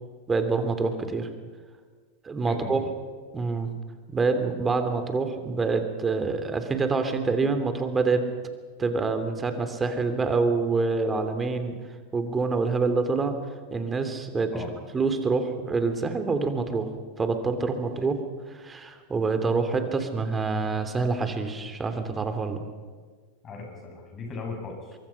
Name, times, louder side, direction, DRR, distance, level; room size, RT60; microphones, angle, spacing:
voice 1, 0.3-1.3 2.2-2.8 3.3-3.7 4.1-8.3 8.8-11.8 12.1-13.4 13.7-14.6 14.9-16.9 17.2-18.2 18.5-22.6, right 4 dB, 20° right, 8 dB, 3.0 m, -26 dB
voice 2, 2.5-2.9 14.5-14.7 23.4-25.0, left 4 dB, 35° left, 2 dB, 7.7 m, -37 dB
24.0 x 23.5 x 5.9 m, 1.5 s
hypercardioid pair, 90°, 0 cm